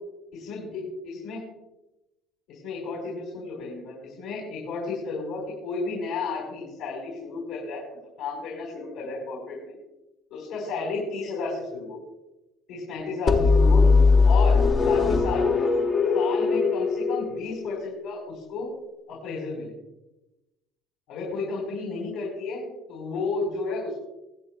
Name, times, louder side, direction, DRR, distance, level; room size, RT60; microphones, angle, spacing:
voice 1, 0.3-1.4 2.5-9.8 10.3-12.0 12.7-13.9 14.2-15.4 16.1-18.8 19.1-19.7 21.1-23.9, left 3 dB, 75° left, -3 dB, 4.0 m, -33 dB
sound 1, 13.3-18.0, left 4 dB, 30° left, 0.8 m, -20 dB
23.5 x 8.5 x 2.2 m, 0.98 s
cardioid pair, 150°, 0 cm